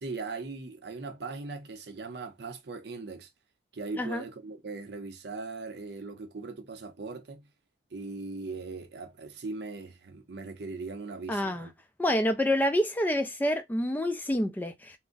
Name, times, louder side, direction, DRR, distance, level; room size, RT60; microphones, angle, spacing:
voice 1, 0.0-3.3 3.7-7.5 7.9-11.7, right 3 dB, 65° right, 0.6 m, -39 dB
voice 2, 11.3-11.7 12.0-15.0, left 1 dB, 10° left, 0.3 m, -27 dB
2.5 x 2.0 x 3.7 m
head